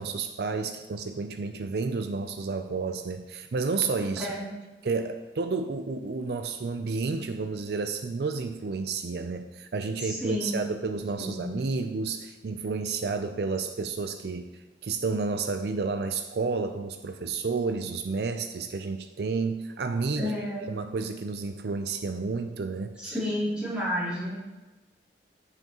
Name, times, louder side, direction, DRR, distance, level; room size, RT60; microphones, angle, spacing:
voice 1, 0.0-4.3 4.8-20.3 20.7-23.2, right 4 dB, 65° right, 8 dB, 0.5 m, -31 dB
voice 2, 10.0-10.6 11.2-11.5 20.2-20.7 23.0-24.3, equal, 5° right, -10 dB, 3.1 m, -31 dB
14.5 x 5.7 x 3.0 m, 1.2 s
head